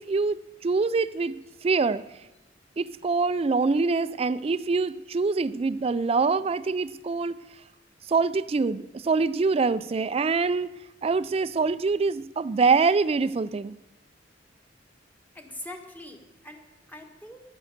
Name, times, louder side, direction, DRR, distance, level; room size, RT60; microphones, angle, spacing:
voice 1, 0.0-1.4 1.6-2.0 2.8-7.4 8.1-10.7 11.0-13.8, right 4 dB, 30° right, 14 dB, 0.4 m, -25 dB
voice 2, 15.3-17.4, left 1 dB, 10° left, 4 dB, 1.4 m, -43 dB
10.5 x 10.0 x 6.5 m, 1.0 s
head